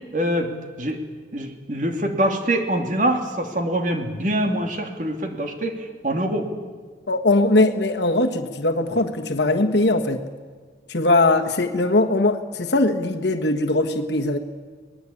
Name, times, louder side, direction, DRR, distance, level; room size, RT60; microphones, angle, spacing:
voice 1, 0.1-0.5 0.8-1.0 1.3-6.5, right 1 dB, 45° right, 4 dB, 2.6 m, -24 dB
voice 2, 7.1-10.3 10.9-14.4, left 2 dB, 75° left, 3 dB, 1.5 m, -20 dB
25.0 x 19.5 x 8.6 m, 1.5 s
head